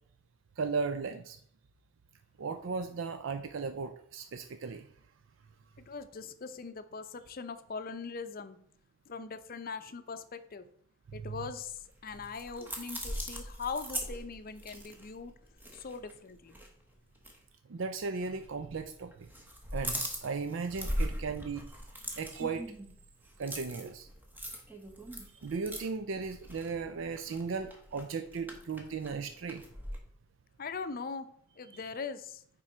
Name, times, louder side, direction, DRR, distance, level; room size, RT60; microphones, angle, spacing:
voice 1, 0.6-1.4 2.4-4.9 11.1-11.4 17.7-19.3 19.7-21.7 22.2-22.7 23.4-24.1 25.3-29.6 31.7-31.8, right 4 dB, 70° right, 9 dB, 0.5 m, -36 dB
voice 2, 5.9-8.6 9.1-10.7 11.1-15.3 15.7-16.6 30.6-31.3 31.6-32.4, left 5 dB, 50° left, 11 dB, 0.6 m, -41 dB
sound 1, 11.7-16.2 16.5-16.7 17.2-17.4 18.2-18.8 19.1-30.0, equal, 10° right, 1.1 m, -40 dB
9.3 x 3.8 x 4.3 m, 0.62 s
head